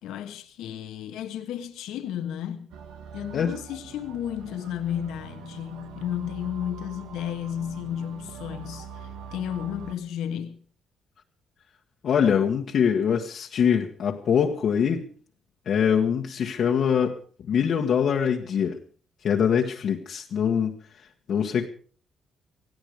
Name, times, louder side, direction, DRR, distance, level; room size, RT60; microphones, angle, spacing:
voice 1, 0.0-2.7 3.1-10.6, left 10 dB, 90° left, 1.4 m, -33 dB
sound 1, 2.7-9.9, right 7 dB, 90° right, 1.7 m, -43 dB
voice 2, 12.0-15.1 15.6-17.2 17.5-18.8 19.2-20.8 21.3-21.7, left 7 dB, 65° left, 1.5 m, -23 dB
17.5 x 16.5 x 5.0 m
cardioid pair, 90°, 0 cm